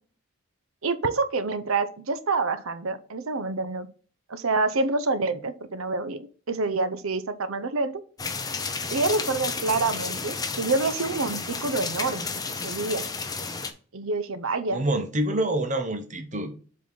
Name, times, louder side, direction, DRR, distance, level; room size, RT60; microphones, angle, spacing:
voice 1, 0.8-3.9 4.3-8.0 8.9-13.0 13.9-14.8, right 3 dB, 75° right, 0.8 m, -27 dB
sound 1, 8.2-13.7, left 4 dB, 15° left, 0.6 m, -32 dB
voice 2, 14.7-16.6, right 1 dB, 35° right, 1.0 m, -27 dB
7.6 x 4.0 x 4.0 m
head